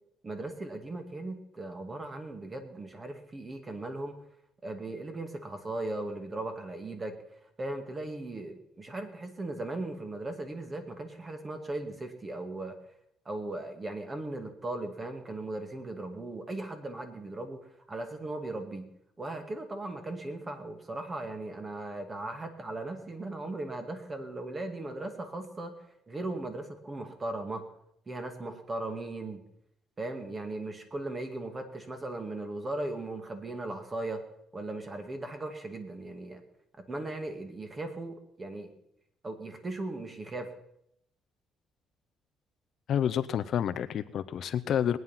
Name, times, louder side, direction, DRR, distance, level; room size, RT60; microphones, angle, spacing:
voice 1, 0.2-4.2 4.6-7.1 7.4-12.7 13.3-18.9 19.2-25.7 26.1-27.6 28.1-29.4 30.0-34.2 34.5-36.4 36.8-38.7 39.2-40.5, right 2 dB, 25° right, 6 dB, 2.2 m, -38 dB
voice 2, 42.9-45.0, left 9 dB, 60° left, 11 dB, 0.7 m, -29 dB
20.5 x 9.3 x 5.7 m, 0.76 s
cardioid pair, 110°, 0 cm